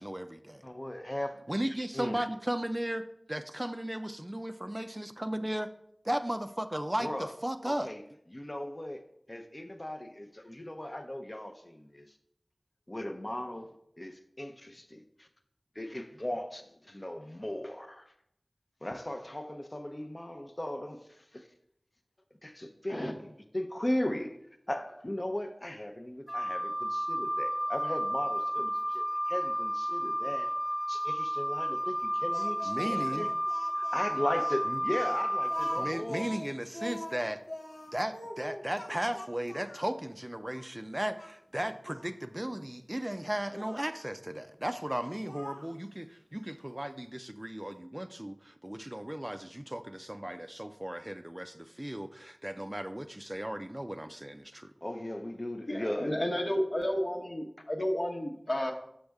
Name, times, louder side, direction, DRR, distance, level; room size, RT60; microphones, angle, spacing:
voice 1, 0.0-0.6 1.5-5.7 6.0-7.9 32.7-33.3 34.7-34.8 35.8-37.4 37.9-54.7, right 1 dB, 20° right, 9 dB, 0.4 m, -36 dB
voice 2, 0.6-1.4 1.9-2.2 7.0-7.3 7.6-8.0 8.3-9.0 9.3-12.1 12.9-13.7 14.0-15.3 15.7-18.1 18.8-21.5 22.4-24.4 24.7-30.5 30.9-33.3 33.7-36.3 54.8-56.2, left 1 dB, 35° left, 6 dB, 0.6 m, -37 dB
Wind instrument woodwind instrument, 26.3-35.9, equal, ahead, 0.8 m, -32 dB
Speech, 32.3-39.9 40.5-40.7 41.2-42.1 43.5-43.8 45.0-45.7, left 1 dB, 90° left, 0.9 m, -44 dB
voice 3, 55.7-58.7, left 1 dB, 60° left, 2 dB, 1.0 m, -31 dB
6.4 x 6.3 x 3.4 m, 0.73 s
wide cardioid pair, 45°, 0 cm